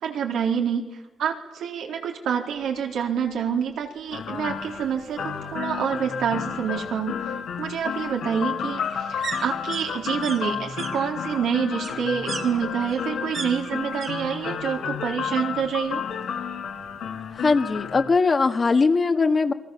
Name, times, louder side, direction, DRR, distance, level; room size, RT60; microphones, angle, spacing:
voice 1, 0.0-0.8 1.2-7.3 7.6-16.0, right 7 dB, 80° right, 1 dB, 3.9 m, -27 dB
sound 1, 3.2-3.3 3.7-3.8 4.0-5.0 6.3-14.1 14.4-15.0 15.2-16.3 16.6-16.7, right 5 dB, 55° right, 3.4 m, -39 dB
sound 2, 4.1-18.0, left 7 dB, 75° left, 3.2 m, -31 dB
voice 2, 17.3-19.5, left 4 dB, 35° left, 7 dB, 1.8 m, -20 dB
29.0 x 23.0 x 7.3 m, 1.1 s
cardioid pair, 120°, 0 cm